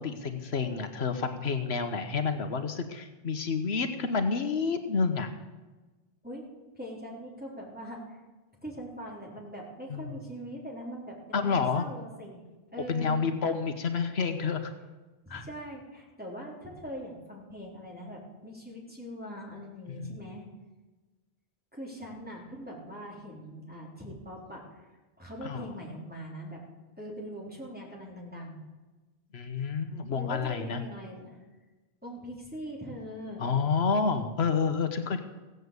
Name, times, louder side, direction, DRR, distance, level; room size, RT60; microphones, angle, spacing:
voice 1, 0.0-5.3 9.9-10.2 11.3-11.9 12.9-14.7 15.3-15.4 19.9-20.1 25.4-25.7 29.3-30.8 33.4-35.2, left 5 dB, 80° left, 8 dB, 1.3 m, -29 dB
voice 2, 6.8-8.2 8.6-12.4 12.7-13.3 15.3-20.5 21.7-24.9 25.2-26.6 27.0-28.6 29.6-29.8 30.1-31.4 32.0-33.4, equal, 10° right, -3 dB, 3.5 m, -42 dB
16.5 x 7.9 x 8.1 m, 1.2 s
omnidirectional pair, 1.1 m